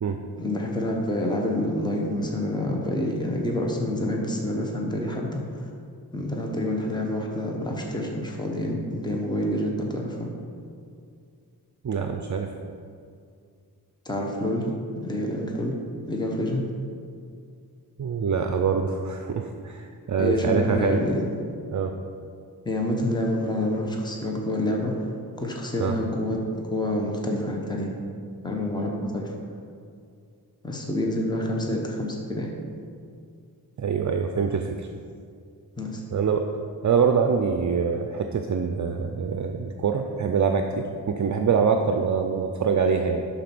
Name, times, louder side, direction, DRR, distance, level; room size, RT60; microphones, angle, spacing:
voice 1, 0.4-5.7 6.1-10.3 14.0-14.7 15.0-15.7 16.1-16.7 20.2-21.3 22.6-28.0 28.4-29.3 30.6-32.5 35.8-36.0, left 1 dB, 10° left, 0 dB, 1.0 m, -27 dB
voice 2, 11.8-12.5 18.0-21.0 21.7-22.0 25.8-26.0 33.8-34.9 36.1-36.5 36.8-43.2, right 6 dB, 50° right, 5 dB, 0.5 m, -24 dB
11.0 x 4.2 x 6.0 m, 2.3 s
wide cardioid pair, 120°, 38 cm